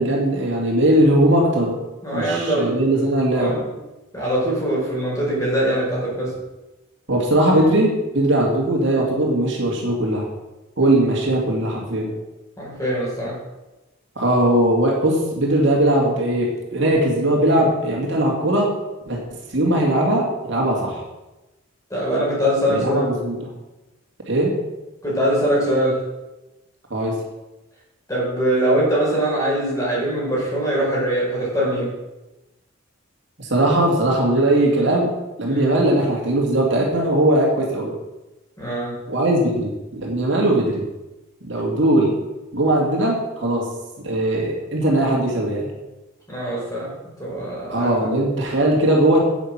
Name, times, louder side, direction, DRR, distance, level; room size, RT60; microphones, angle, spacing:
voice 1, 0.0-1.8 2.1-3.5 7.1-10.3 10.8-12.1 14.2-18.7 19.1-21.0 22.7-23.5 24.3-24.5 26.9-27.2 33.4-35.1 35.4-37.9 39.1-40.8 41.4-42.2 42.5-43.7 44.0-45.7 47.7-49.2, right 1 dB, 55° right, -2 dB, 2.5 m, -19 dB
voice 2, 2.0-2.7 3.4-3.6 4.1-6.3 12.6-13.4 21.9-23.1 25.0-26.0 28.1-31.9 35.4-35.7 38.6-38.9 46.3-46.9 47.2-47.9, right 1 dB, 15° left, -5 dB, 4.9 m, -22 dB
10.0 x 8.3 x 6.1 m, 1.0 s
head